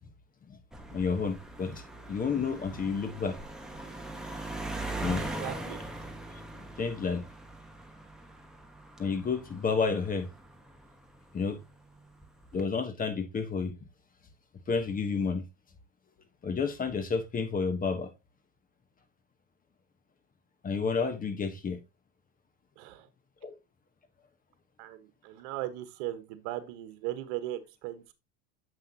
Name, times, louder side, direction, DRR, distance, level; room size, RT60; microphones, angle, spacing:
sound 1, 0.7-11.4 12.2-12.6, right 2 dB, ahead, 1.2 m, -41 dB
voice 1, 0.9-1.8 2.1-3.4 5.0-5.2 6.6-7.2 9.0-10.3 11.3-11.6 12.5-13.7 14.7-15.4 16.4-18.1 20.6-21.8 23.4-23.5, left 5 dB, 20° left, 1.2 m, -30 dB
voice 2, 5.2-5.8 22.8-23.1 24.8-28.1, right 14 dB, 60° right, 1.4 m, -38 dB
7.8 x 5.8 x 2.9 m
supercardioid pair, 115°, 40 cm